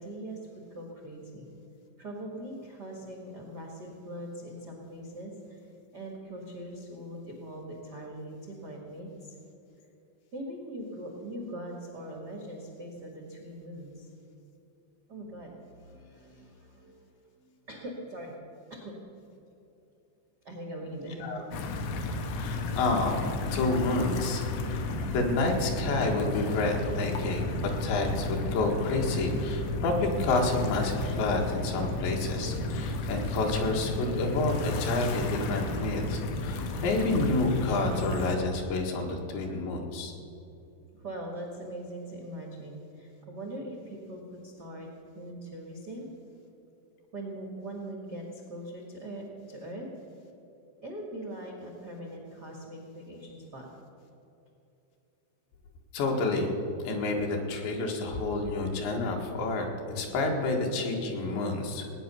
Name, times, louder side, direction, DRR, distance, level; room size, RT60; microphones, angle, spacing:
voice 1, 0.0-1.5 2.0-5.6 5.9-9.3 10.3-14.1 15.1-18.4 18.7-18.9 20.4-21.3 40.9-44.9 45.1-46.1 47.1-49.9 50.8-53.7, right 1 dB, 80° right, -1 dB, 0.9 m, -41 dB
sound 1, 21.5-38.4, left 2 dB, 90° left, 3.7 m, -33 dB
voice 2, 22.3-40.1 55.9-56.5 56.8-61.9, left 2 dB, 75° left, 1 dB, 4.0 m, -29 dB
19.0 x 9.6 x 7.0 m, 2.9 s
omnidirectional pair, 5.3 m